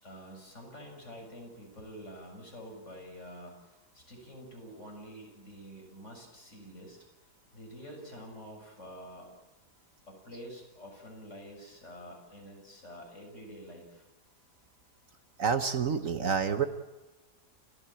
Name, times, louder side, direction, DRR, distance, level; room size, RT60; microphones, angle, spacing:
voice 1, 0.0-7.0 7.5-9.3 10.1-14.0, equal, 45° left, 1 dB, 7.2 m, -47 dB
voice 2, 15.4-16.7, right 6 dB, 55° right, 9 dB, 1.4 m, -28 dB
29.0 x 15.5 x 8.8 m, 1.1 s
omnidirectional pair, 1.7 m